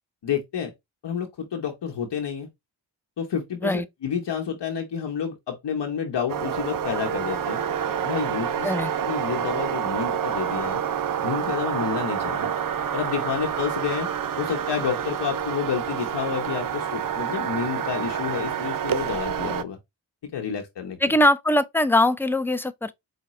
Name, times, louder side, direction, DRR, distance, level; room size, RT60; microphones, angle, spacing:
voice 1, 0.2-0.7 1.0-2.5 3.2-7.6 8.0-8.7 9.1-10.8 11.2-12.5 12.9-14.1 14.4-19.8 20.3-21.0, left 7 dB, 65° left, 1.0 m, -29 dB
sound 1, 6.3-19.6, right 8 dB, 50° right, 0.6 m, -28 dB
voice 2, 21.0-22.9, left 1 dB, 5° left, 0.4 m, -21 dB
4.8 x 2.2 x 3.0 m
cardioid pair, 50°, 45 cm